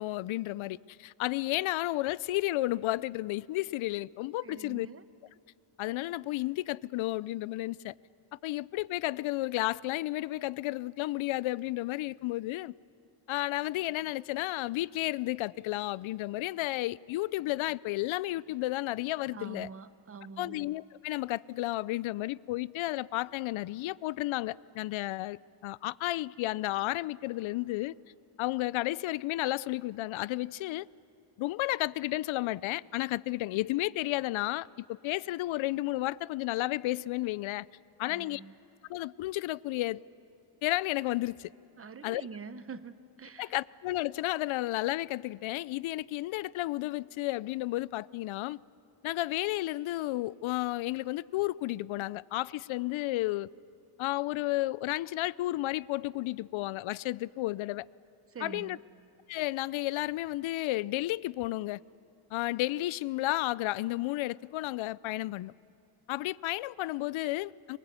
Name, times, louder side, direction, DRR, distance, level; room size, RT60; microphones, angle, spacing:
voice 1, 0.0-4.9 5.8-7.9 8.4-12.7 13.3-19.7 20.4-28.0 28.4-30.9 31.4-37.7 38.0-38.4 38.9-40.0 40.6-41.5 42.0-42.2 43.4-48.6 49.0-53.5 54.0-57.9 58.4-58.8 59.3-61.8 62.3-65.5 66.1-67.8, left 17 dB, 75° left, 0.5 m, -32 dB
voice 2, 4.4-5.0 19.3-20.6 38.0-38.5 41.8-43.6 58.3-58.8, right 5 dB, 30° right, 0.8 m, -45 dB
25.5 x 23.5 x 8.2 m
cardioid pair, 145°, 48 cm